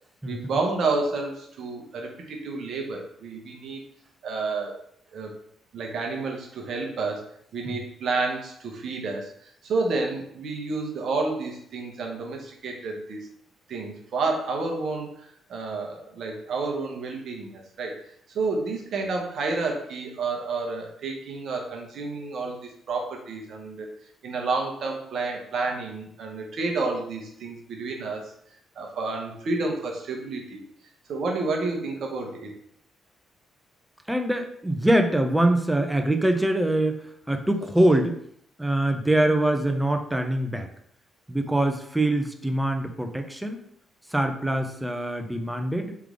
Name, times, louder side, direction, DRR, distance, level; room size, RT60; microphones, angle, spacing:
voice 1, 0.3-3.8 4.2-4.8 5.1-5.3 5.7-13.3 13.7-18.0 18.3-23.9 24.2-28.3 28.7-30.6 31.1-32.5, right 3 dB, 60° right, 2 dB, 0.9 m, -30 dB
voice 2, 34.1-37.0 37.3-38.2 38.6-40.7 41.3-43.6 44.1-45.9, right 1 dB, 5° right, 5 dB, 0.7 m, -24 dB
3.5 x 3.2 x 3.7 m, 0.68 s
hypercardioid pair, 45°, 0 cm